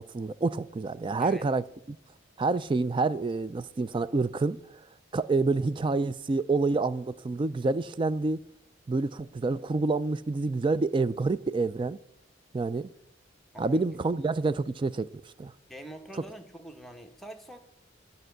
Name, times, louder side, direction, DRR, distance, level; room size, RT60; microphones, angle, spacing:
voice 1, 0.0-1.6 2.4-4.6 5.1-8.4 8.9-12.0 12.5-12.9 13.6-15.1 15.4-15.5, right 3 dB, 25° right, 0.3 m, -27 dB
voice 2, 15.7-17.6, right 1 dB, ahead, 1.0 m, -45 dB
12.5 x 5.3 x 7.8 m
head